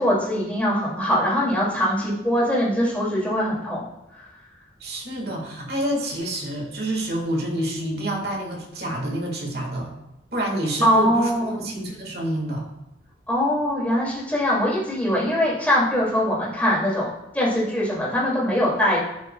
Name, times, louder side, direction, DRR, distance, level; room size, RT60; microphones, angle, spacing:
voice 1, 0.0-3.8 4.2-4.3 10.8-11.5 13.3-19.0, equal, 10° left, -6 dB, 2.4 m, -22 dB
voice 2, 4.8-9.9 10.3-12.7, right 1 dB, 60° right, 1 dB, 1.8 m, -28 dB
11.0 x 5.8 x 2.3 m, 0.91 s
head